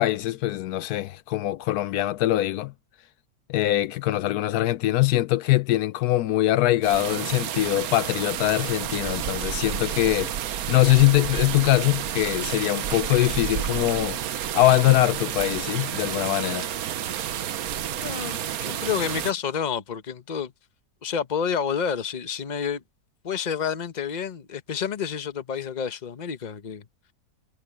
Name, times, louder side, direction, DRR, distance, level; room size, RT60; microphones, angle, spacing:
voice 1, 0.0-2.7 3.5-10.3 10.7-14.2 14.5-16.7, left 16 dB, 80° left, 1.1 m, -22 dB
sound 1, 6.8-19.3, right 10 dB, 70° right, 1.3 m, -30 dB
voice 2, 18.0-20.5 21.0-22.8 23.2-26.8, left 7 dB, 35° left, 1.0 m, -29 dB
omnidirectional pair, 1.6 m